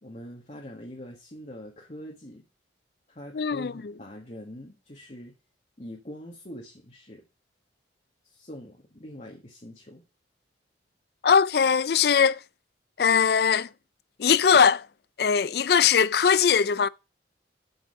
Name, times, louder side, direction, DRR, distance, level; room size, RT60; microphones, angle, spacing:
voice 1, 0.0-2.4 3.1-5.3 5.8-7.2 8.2-10.0, equal, 35° left, 1.6 m, -43 dB
voice 2, 3.3-3.7 11.2-12.4 13.0-13.7 14.2-14.8 15.2-16.9, left 6 dB, 55° left, 0.4 m, -20 dB
8.3 x 6.5 x 6.5 m
head